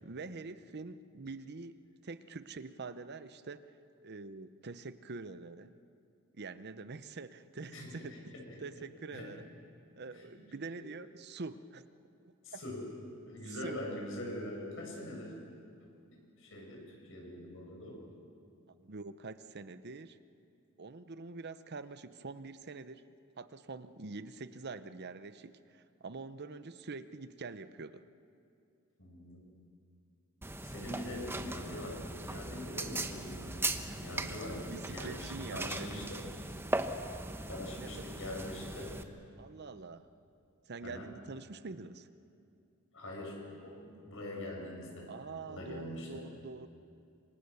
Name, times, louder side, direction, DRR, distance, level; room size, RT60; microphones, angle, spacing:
voice 1, 0.0-3.6 4.0-5.7 6.3-8.1 8.6-9.5 10.0-11.8 12.2-12.6 13.6-13.8 18.8-20.2 20.8-23.0 23.4-28.1 33.8-34.0 34.7-35.9 37.7-37.9 39.4-40.0 40.7-42.1 45.1-46.7, right 3 dB, 55° right, 12 dB, 0.8 m, -45 dB
voice 2, 7.7-8.6 9.1-9.3 10.1-10.2 12.4-12.8 13.3-15.3 16.1-18.0 29.0-29.4 30.6-33.7 34.0-36.2 37.5-38.9 40.8-41.1 42.9-45.1 45.5-46.2, left 1 dB, 65° left, -1 dB, 7.2 m, -43 dB
sound 1, 30.4-39.0, right 2 dB, 10° right, 1.1 m, -39 dB
27.0 x 25.0 x 7.0 m, 2.5 s
head